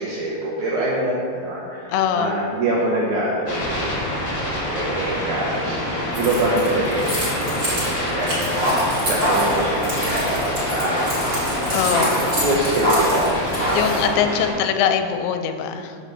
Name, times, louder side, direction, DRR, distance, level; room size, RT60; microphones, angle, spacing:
voice 1, 0.0-4.0 4.5-8.6 9.1-11.5 12.0-14.0 14.6-14.7, right 1 dB, 75° right, -6 dB, 1.8 m, -25 dB
voice 2, 1.9-2.3 11.7-12.1 13.7-16.0, left 8 dB, 90° left, 8 dB, 2.6 m, -22 dB
sound 1, 3.5-14.5, left 1 dB, 65° left, 0.9 m, -26 dB
Keys jangling, 6.1-13.9, right 1 dB, 35° right, 1.4 m, -30 dB
sound 2, 8.4-14.0, equal, 50° right, 0.6 m, -24 dB
5.4 x 5.0 x 6.4 m, 2.2 s
omnidirectional pair, 4.6 m